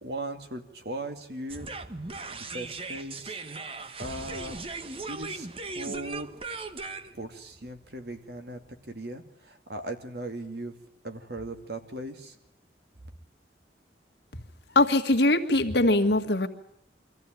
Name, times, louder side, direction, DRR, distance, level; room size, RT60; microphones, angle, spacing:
voice 1, 0.0-1.7 2.3-3.4 4.0-4.6 5.1-6.3 7.1-8.6 8.9-10.7 11.0-12.4, right 1 dB, 60° right, 6 dB, 2.4 m, -38 dB
sound 1, 1.5-8.6, right 3 dB, 30° right, 1.1 m, -38 dB
voice 2, 14.7-16.5, left 2 dB, 70° left, 5 dB, 1.9 m, -22 dB
24.5 x 15.0 x 9.1 m, 0.80 s
head